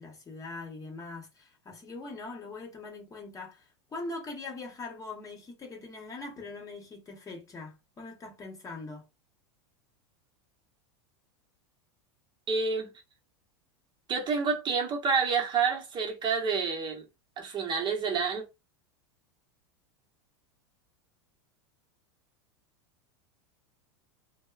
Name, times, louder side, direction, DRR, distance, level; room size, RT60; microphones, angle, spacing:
voice 1, 0.0-9.1, left 3 dB, 25° left, 0.9 m, -42 dB
voice 2, 12.5-12.9 14.1-17.0 17.4-18.4, right 5 dB, 30° right, 0.8 m, -28 dB
2.8 x 2.1 x 2.3 m
hypercardioid pair, 100°, 15 cm